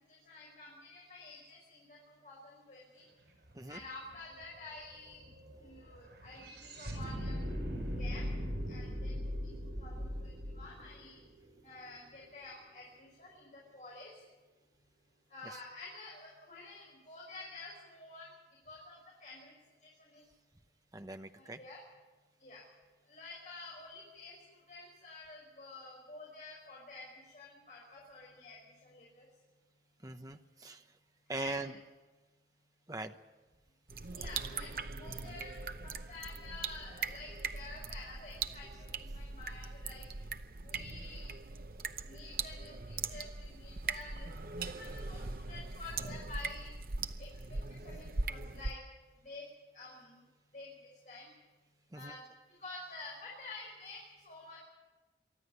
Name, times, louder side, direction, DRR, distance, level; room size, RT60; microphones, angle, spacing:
voice 1, 0.1-3.0 3.7-5.2 5.6-7.4 8.0-8.2 8.7-11.2 11.6-14.2 15.3-18.3 18.7-19.5 19.8-20.2 21.3-21.8 22.4-22.6 23.1-29.3 31.3-31.7 34.2-40.1 40.6-41.3 42.1-44.3 44.6-46.7 47.2-47.6 47.8-48.8 49.2-49.4 49.7-50.2 50.5-50.7 51.0-51.3 51.9-52.2 52.6-54.6, left 3 dB, 45° left, -3 dB, 5.8 m, -50 dB
sound 1, 3.4-3.5 3.8-12.0, equal, 90° right, 7.4 m, -40 dB
voice 2, 20.9-21.6 30.0-30.8 31.3-31.7 32.9-33.1 51.9-52.1, right 2 dB, 20° right, 7 dB, 0.9 m, -41 dB
sound 2, 33.9-48.7, right 4 dB, 55° right, 0.8 m, -41 dB
24.0 x 13.5 x 9.5 m, 1.2 s
head